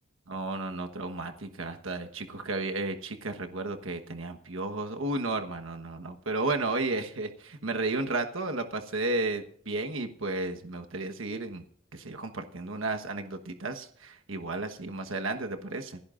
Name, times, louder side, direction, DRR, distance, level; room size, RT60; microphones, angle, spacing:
voice 1, 0.3-11.6 11.9-16.0, right 2 dB, 75° right, 5 dB, 1.3 m, -33 dB
28.0 x 11.0 x 2.5 m, 0.64 s
head